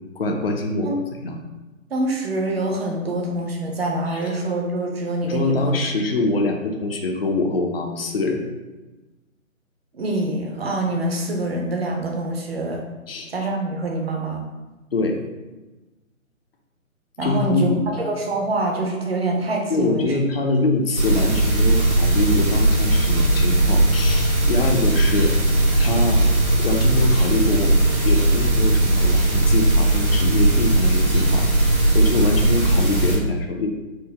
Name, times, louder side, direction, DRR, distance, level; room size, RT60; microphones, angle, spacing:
voice 1, 0.2-0.9 1.2-1.4 4.1-4.3 5.2-8.4 13.1-13.3 14.9-15.2 17.2-17.9 19.7-25.3 25.8-26.2 26.6-31.4 31.9-33.7, left 2 dB, 45° left, 3 dB, 0.5 m, -24 dB
voice 2, 1.9-5.7 9.9-12.8 13.3-14.4 17.2-20.2, right 2 dB, 45° right, 1 dB, 0.7 m, -25 dB
sound 1, 20.9-33.2, right 1 dB, 85° right, 1.5 m, -18 dB
4.6 x 2.2 x 3.3 m, 1.1 s
figure-of-eight pair, 150°, 41 cm